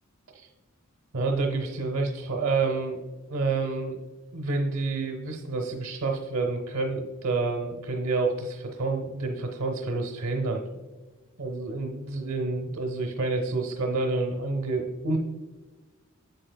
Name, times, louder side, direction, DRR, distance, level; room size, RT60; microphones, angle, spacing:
voice 1, 1.1-3.0 3.3-4.0 4.3-10.6 11.4-15.2, right 3 dB, 70° right, 2 dB, 0.8 m, -28 dB
7.9 x 7.4 x 2.2 m, 1.3 s
head